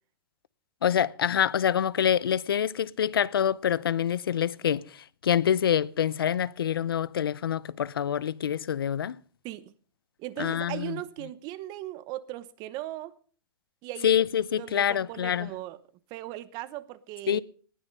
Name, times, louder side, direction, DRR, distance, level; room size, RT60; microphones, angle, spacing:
voice 1, 0.8-9.2 10.4-11.0 14.0-15.5 17.3-17.4, left 9 dB, 90° left, 0.6 m, -26 dB
voice 2, 10.2-13.1 13.8-14.1 14.6-15.8 16.1-17.4, right 15 dB, 35° right, 1.0 m, -38 dB
19.0 x 9.6 x 5.4 m
hypercardioid pair, 140°, 12 cm